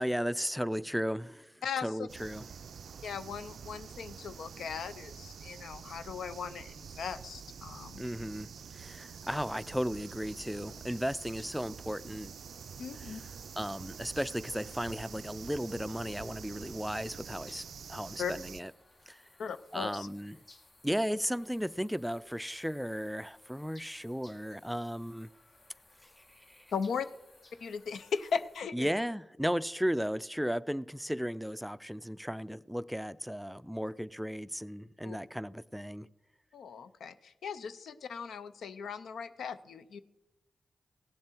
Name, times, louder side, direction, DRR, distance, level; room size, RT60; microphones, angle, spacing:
voice 1, 0.0-1.5 1.8-2.5 8.0-12.3 12.9-13.3 13.6-17.6 17.9-18.7 19.1-19.2 19.7-20.4 20.8-25.3 26.2-26.7 28.7-36.1, equal, ahead, 0.4 m, -35 dB
voice 2, 1.6-2.1 3.0-8.1 12.8-13.2 18.2-18.3 19.4-20.1 26.7-27.1 27.6-28.9 35.0-35.2 36.5-40.0, left 6 dB, 85° left, 0.5 m, -38 dB
sound 1, 2.1-18.6, right 7 dB, 80° right, 0.3 m, -47 dB
sound 2, 8.8-28.6, left 2 dB, 50° left, 1.5 m, -62 dB
16.5 x 7.4 x 4.5 m
cardioid pair, 45°, 0 cm